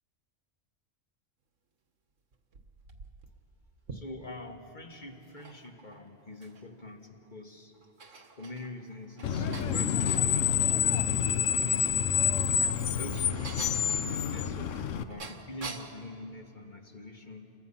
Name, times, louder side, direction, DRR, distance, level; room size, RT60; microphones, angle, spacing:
sound 1, 2.3-4.5 5.2-6.8 7.2-7.3 7.7-10.3 12.0-16.0, right 4 dB, 85° right, 1.7 m, -46 dB
voice 1, 3.9-7.7 8.1-12.1 12.8-14.8 15.1-17.5, left 2 dB, 40° left, 2 dB, 2.1 m, -45 dB
Screech, 9.2-15.0, left 8 dB, 90° left, 1.2 m, -28 dB
29.5 x 22.5 x 5.7 m, 2.7 s
omnidirectional pair, 1.3 m